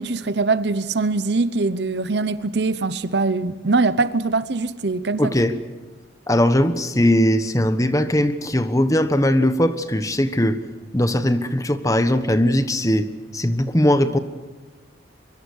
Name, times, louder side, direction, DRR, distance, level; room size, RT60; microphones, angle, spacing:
voice 1, 0.0-5.3, right 3 dB, 65° right, 0.9 m, -22 dB
voice 2, 5.2-5.5 6.3-10.6 10.9-13.1 13.3-14.2, left 1 dB, 15° left, 1.2 m, -19 dB
24.0 x 23.5 x 6.5 m
head